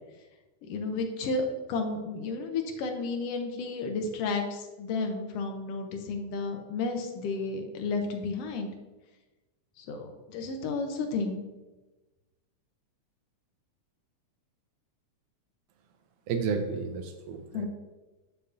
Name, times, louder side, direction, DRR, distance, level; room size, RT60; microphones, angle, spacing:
voice 1, 0.7-8.7 9.8-11.4 17.5-17.7, left 3 dB, 75° left, 4 dB, 1.4 m, -32 dB
voice 2, 16.3-17.7, right 5 dB, 90° right, 5 dB, 2.2 m, -31 dB
6.9 x 6.7 x 2.6 m, 1.2 s
omnidirectional pair, 3.5 m